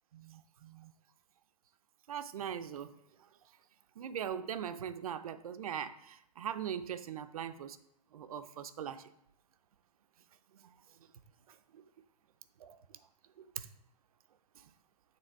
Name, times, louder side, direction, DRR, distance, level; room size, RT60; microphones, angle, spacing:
voice 1, 0.1-0.9 2.1-2.9 4.0-7.8 8.1-9.0 12.6-12.8 13.6-13.7, right 8 dB, 60° right, 13 dB, 0.5 m, -40 dB
6.7 x 3.5 x 4.5 m, 0.81 s
hypercardioid pair, 165°, 21 cm